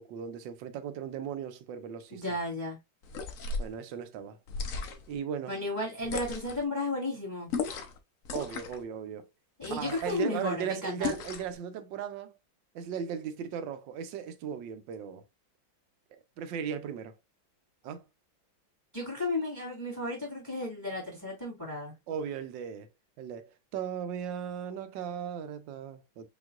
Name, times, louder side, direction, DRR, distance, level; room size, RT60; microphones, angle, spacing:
voice 1, 0.0-2.2 3.6-4.4 5.1-5.5 8.3-9.3 9.7-12.3 12.7-15.2 16.1-17.1 17.8-18.0 22.1-22.9 23.2-26.3, right 8 dB, 70° right, 1.3 m, -37 dB
voice 2, 2.1-2.8 5.5-7.5 9.6-11.1 18.9-22.0, left 2 dB, 10° left, 1.8 m, -33 dB
sound 1, 3.0-3.7 4.5-5.2 6.0-6.6 7.5-8.0 8.2-8.8 9.6-10.2 11.0-11.6, left 5 dB, 65° left, 0.8 m, -36 dB
5.2 x 3.0 x 2.4 m
omnidirectional pair, 2.2 m